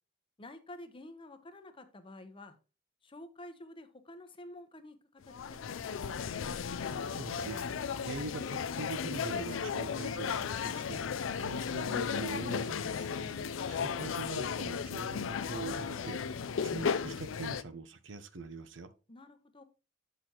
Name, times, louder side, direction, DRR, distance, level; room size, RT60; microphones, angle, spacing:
voice 1, 0.4-2.5 3.0-5.9 19.1-19.6, left 1 dB, 25° left, 0.8 m, -50 dB
sound 1, 5.3-17.6, left 6 dB, 85° left, 0.4 m, -35 dB
voice 2, 7.2-11.0 11.4-18.9, right 3 dB, 70° right, 0.7 m, -43 dB
7.7 x 6.5 x 2.9 m
head